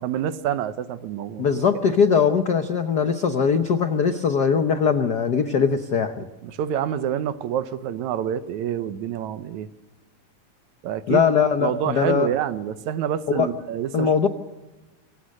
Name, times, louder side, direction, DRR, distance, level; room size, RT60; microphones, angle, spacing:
voice 1, 0.0-1.5 6.4-9.7 10.8-11.3 11.6-14.1, right 10 dB, 75° right, 12 dB, 2.3 m, -27 dB
voice 2, 1.4-6.3 11.1-12.3 13.3-13.5 13.9-14.3, left 6 dB, 85° left, 8 dB, 0.9 m, -21 dB
27.0 x 22.5 x 6.5 m, 1.1 s
omnidirectional pair, 3.4 m